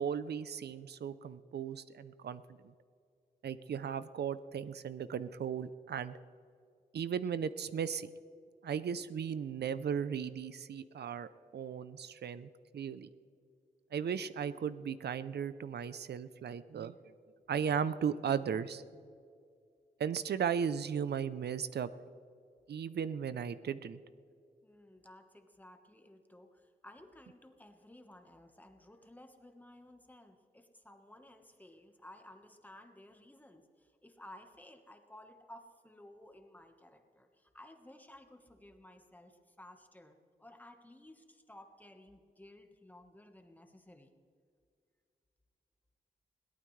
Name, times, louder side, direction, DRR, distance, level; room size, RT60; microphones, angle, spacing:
voice 1, 0.0-2.4 3.4-6.2 6.9-8.1 8.6-13.1 13.9-17.0 17.5-18.8 20.0-21.9 22.7-24.0, right 7 dB, 85° right, 14 dB, 0.6 m, -36 dB
voice 2, 24.6-44.1, left 1 dB, 10° left, 5 dB, 1.3 m, -56 dB
21.5 x 17.5 x 3.3 m, 2.3 s
wide cardioid pair, 135°, 17 cm